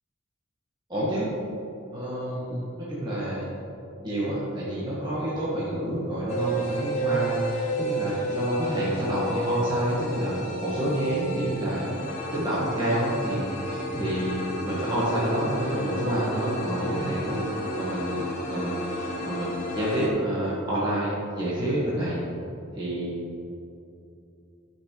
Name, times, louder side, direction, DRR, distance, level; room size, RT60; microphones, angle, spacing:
voice 1, 0.9-1.4 1.9-3.5 4.0-11.9 12.3-22.2 22.7-23.5, right 1 dB, 20° right, -9 dB, 1.5 m, -28 dB
sound 1, 6.3-20.1, equal, 35° left, 1.1 m, -32 dB
12.5 x 5.8 x 3.2 m, 2.7 s
head